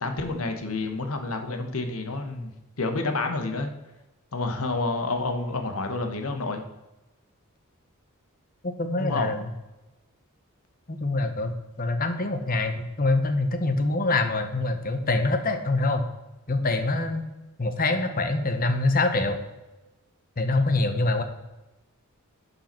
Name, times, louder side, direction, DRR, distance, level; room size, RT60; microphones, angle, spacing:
voice 1, 0.0-3.7 4.3-6.6 9.0-9.3, left 3 dB, 75° left, 6 dB, 1.2 m, -29 dB
voice 2, 8.6-9.4 10.9-16.0 16.5-17.3 17.6-19.4 20.4-21.2, left 2 dB, 40° left, 8 dB, 0.9 m, -25 dB
11.5 x 5.6 x 4.4 m, 1.0 s
head